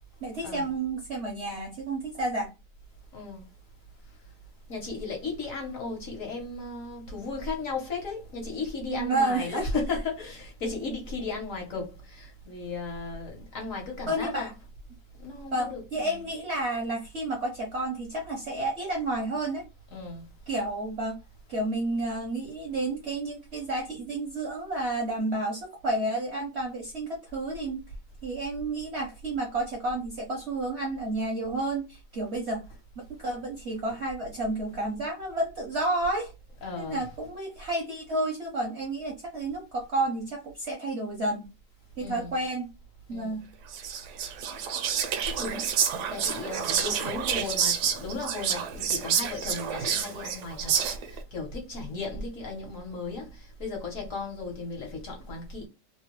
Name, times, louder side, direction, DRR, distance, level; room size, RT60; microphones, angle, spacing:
voice 1, 0.2-2.5 8.9-9.7 14.1-14.5 15.5-19.6 20.5-21.2 21.5-27.8 28.2-32.6 33.1-36.3 36.8-41.5 42.0-42.7 43.1-43.5, right 2 dB, 55° right, 0.8 m, -31 dB
voice 2, 3.1-3.5 4.7-14.5 15.2-16.2 19.9-20.2 36.6-37.1 42.0-42.4 43.1-43.4 45.2-45.7 46.1-50.7 51.0-55.7, left 3 dB, 55° left, 1.1 m, -35 dB
Whispering, 43.7-51.2, right 7 dB, 75° right, 1.1 m, -29 dB
3.0 x 2.2 x 2.9 m
omnidirectional pair, 1.9 m